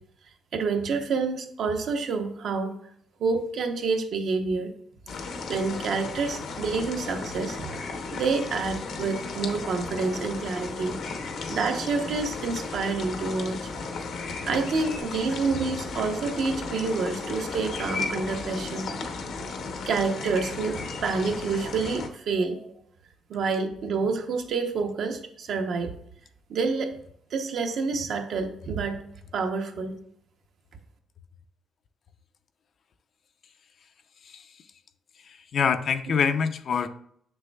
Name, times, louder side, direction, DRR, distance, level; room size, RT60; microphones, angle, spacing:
voice 1, 0.5-2.7 3.2-4.7 5.5-7.8 8.1-11.0 11.5-13.6 14.4-18.9 19.9-22.7 23.3-25.9 26.5-27.0 27.3-29.0 29.3-30.0, right 4 dB, 70° right, 4 dB, 0.8 m, -28 dB
sound 1, 5.1-22.1, left 4 dB, 75° left, 0.8 m, -35 dB
voice 2, 35.5-36.9, left 6 dB, 55° left, 10 dB, 0.4 m, -25 dB
6.9 x 6.5 x 2.3 m, 0.68 s
cardioid pair, 90°, 0 cm